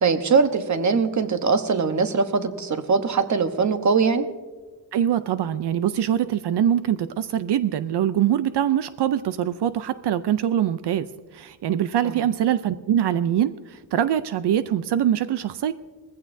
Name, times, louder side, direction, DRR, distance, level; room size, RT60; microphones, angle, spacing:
voice 1, 0.0-4.3 12.0-12.2, right 5 dB, 45° right, 9 dB, 1.0 m, -21 dB
voice 2, 4.9-11.1 11.3-13.5 13.9-15.7, right 10 dB, 85° right, 12 dB, 0.5 m, -23 dB
20.5 x 15.5 x 2.6 m, 1.3 s
wide cardioid pair, 140°, 40 cm